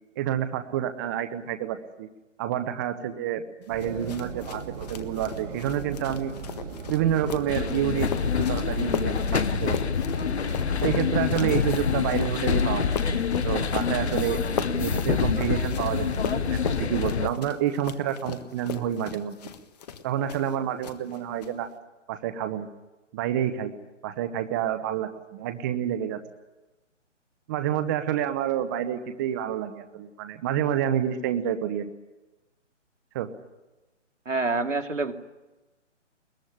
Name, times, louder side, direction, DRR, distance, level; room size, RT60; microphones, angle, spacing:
voice 1, 0.2-2.1 2.4-6.3 6.9-8.1 8.4-9.8 10.8-14.4 14.8-19.4 20.0-21.7 22.1-22.7 23.1-23.7 24.0-26.2 27.5-31.9 33.1-33.3, right 10 dB, 15° right, 9 dB, 0.8 m, -28 dB
sound 1, 3.7-17.3, right 5 dB, 30° right, 4.8 m, -37 dB
sound 2, 3.8-20.6 20.8-21.5, left 7 dB, 35° left, 1.6 m, -37 dB
sound 3, 7.5-17.3, left 7 dB, 60° left, 1.1 m, -26 dB
voice 2, 34.3-35.1, right 3 dB, 85° right, 6 dB, 2.6 m, -26 dB
22.0 x 20.5 x 10.0 m, 1.1 s
figure-of-eight pair, 145°, 37 cm